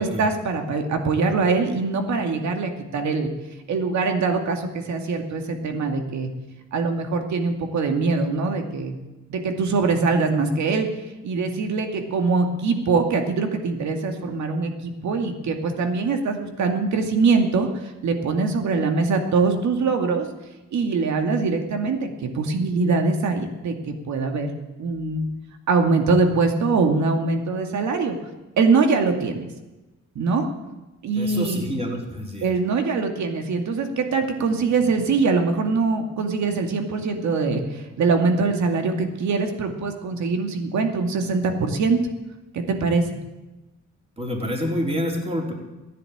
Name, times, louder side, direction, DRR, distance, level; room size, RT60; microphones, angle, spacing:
voice 1, 0.0-3.3 3.7-6.3 6.7-8.9 9.3-10.9 11.2-20.3 20.7-24.5 24.8-25.3 25.7-28.2 28.6-29.4 30.2-30.5 31.0-31.6 32.4-42.0 42.5-43.0, right 4 dB, 65° right, 4 dB, 2.4 m, -23 dB
voice 2, 31.2-32.5 44.2-45.5, equal, 20° right, 0 dB, 3.9 m, -27 dB
15.5 x 10.5 x 8.7 m, 1.1 s
cardioid pair, 90°, 30 cm